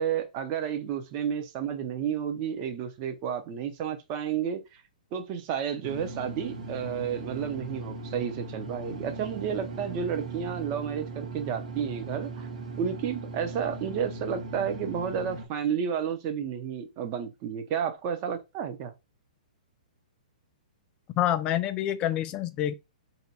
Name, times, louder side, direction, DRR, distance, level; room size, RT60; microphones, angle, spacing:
voice 1, 0.0-4.8 5.1-12.5 12.7-18.9, right 8 dB, 30° right, 0.6 m, -31 dB
sound 1, 5.8-15.5, right 3 dB, 65° right, 1.0 m, -39 dB
voice 2, 21.2-22.7, left 12 dB, 20° left, 0.3 m, -27 dB
2.7 x 2.2 x 4.1 m
hypercardioid pair, 155°, 4 cm